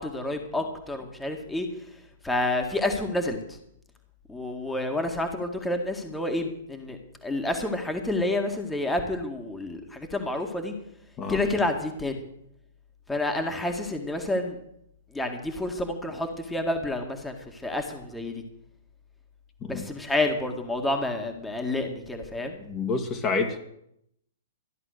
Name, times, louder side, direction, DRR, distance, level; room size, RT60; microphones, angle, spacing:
voice 1, 0.0-1.7 2.2-3.4 4.3-10.7 11.3-12.2 13.1-14.6 15.1-18.4 19.7-22.6, left 2 dB, 5° left, 4 dB, 2.0 m, -29 dB
voice 2, 22.6-23.6, left 4 dB, 25° left, 3 dB, 1.9 m, -28 dB
14.0 x 11.0 x 6.7 m, 0.76 s
figure-of-eight pair, 115°, 0 cm